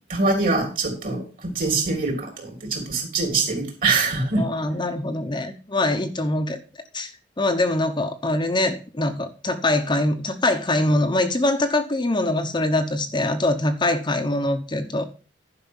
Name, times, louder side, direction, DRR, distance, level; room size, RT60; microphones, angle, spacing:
voice 1, 0.1-4.4, right 3 dB, 50° right, 3 dB, 3.5 m, -24 dB
voice 2, 4.4-6.6 6.9-7.1 7.4-15.0, left 2 dB, 25° left, 6 dB, 0.9 m, -23 dB
11.0 x 5.6 x 5.6 m, 0.35 s
head